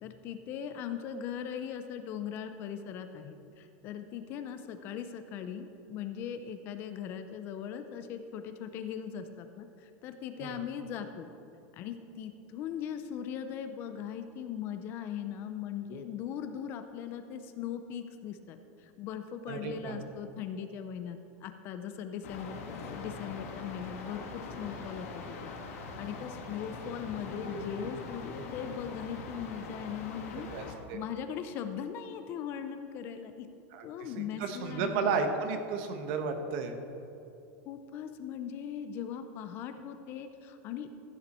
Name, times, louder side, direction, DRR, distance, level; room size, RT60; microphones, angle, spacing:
voice 1, 0.0-11.3 11.7-25.4 26.0-30.5 30.9-33.5 33.8-35.2 37.7-40.9, left 8 dB, 30° left, 9 dB, 0.4 m, -39 dB
voice 2, 19.5-20.0 30.5-31.0 33.7-36.8, right 5 dB, 45° right, 6 dB, 1.0 m, -33 dB
sound 1, 22.2-30.7, left 3 dB, 85° left, 1.6 m, -42 dB
14.5 x 7.0 x 4.2 m, 2.7 s
supercardioid pair, 180°, 8 cm